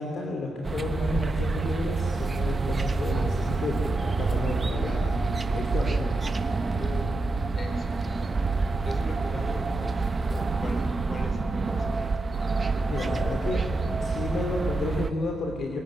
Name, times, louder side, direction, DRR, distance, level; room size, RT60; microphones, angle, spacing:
voice 1, 0.0-6.0 12.9-13.6 14.0-15.8, left 2 dB, 55° left, 2 dB, 3.0 m, -32 dB
sound 1, 0.6-15.1, right 4 dB, 30° right, 1.3 m, -27 dB
voice 2, 5.9-6.2 6.7-7.3 7.5-12.1, left 1 dB, 35° left, 5 dB, 4.9 m, -40 dB
23.0 x 19.5 x 9.9 m, 2.1 s
cardioid pair, 90°, 0 cm